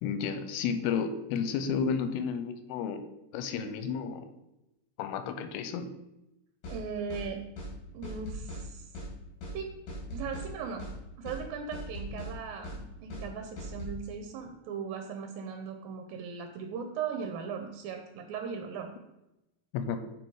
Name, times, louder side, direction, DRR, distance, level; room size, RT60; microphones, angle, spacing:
voice 1, 0.0-3.1 3.3-4.3 5.0-5.9 19.7-20.0, left 6 dB, 90° left, 9 dB, 2.7 m, -32 dB
sound 1, 6.6-6.8 7.1-7.3 7.6-7.7 8.0-8.6 8.9-9.1 9.4-9.6 9.9-10.5 10.8-11.0 11.3-11.4 11.7-12.3 12.6-12.8 13.1-13.3 13.6-13.9, right 1 dB, 60° left, 4.0 m, -39 dB
voice 2, 6.7-7.4 7.9-8.9 9.5-9.7 10.1-10.9 11.2-18.9, right 6 dB, 75° right, 5 dB, 2.3 m, -38 dB
10.5 x 4.7 x 4.7 m, 0.92 s
omnidirectional pair, 4.6 m